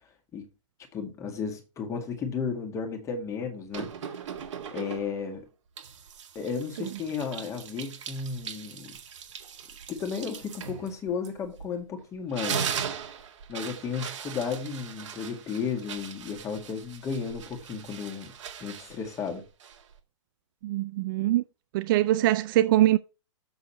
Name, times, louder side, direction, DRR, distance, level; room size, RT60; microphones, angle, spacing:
voice 1, 0.9-4.2 4.7-5.4 6.4-9.0 9.9-12.7 13.5-18.3 18.6-19.4, left 5 dB, 20° left, 1.8 m, -34 dB
sound 1, 3.7-5.3 5.8-11.8 12.2-20.0, right 7 dB, 65° right, 2.0 m, -39 dB
voice 2, 20.6-21.4 21.7-23.0, right 14 dB, 40° right, 0.4 m, -23 dB
7.0 x 6.4 x 4.3 m
hypercardioid pair, 140°, 17 cm